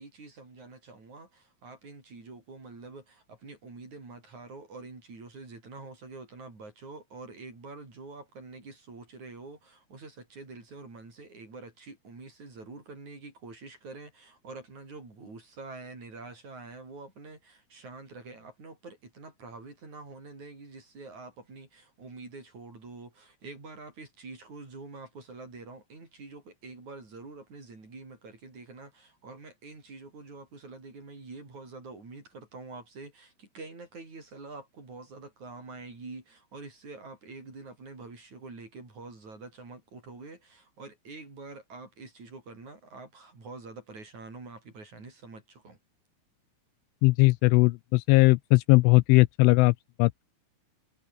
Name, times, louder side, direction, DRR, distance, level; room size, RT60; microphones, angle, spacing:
voice 1, 0.0-45.8, right 3 dB, 35° right, 8.0 m, -46 dB
voice 2, 47.0-50.3, left 24 dB, 85° left, 2.9 m, -20 dB
omnidirectional pair, 5.7 m